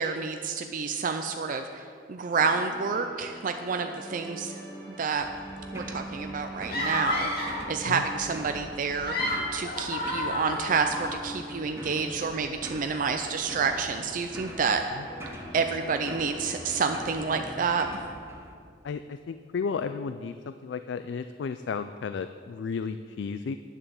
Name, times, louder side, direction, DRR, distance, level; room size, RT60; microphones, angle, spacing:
voice 1, 0.0-4.5 4.9-5.3 5.7-9.1 9.5-14.8 15.5-17.8, right 5 dB, 45° right, 6 dB, 0.4 m, -29 dB
sound 1, 2.3-17.7, right 1 dB, 5° left, 2.7 m, -43 dB
sound 2, 5.2-18.5, right 1 dB, 15° right, 1.0 m, -45 dB
sound 3, 6.7-7.7 8.8-11.2, left 1 dB, 55° left, 2.1 m, -31 dB
voice 2, 18.8-23.6, left 5 dB, 70° left, 10 dB, 0.3 m, -33 dB
10.0 x 7.0 x 7.0 m, 2.2 s
head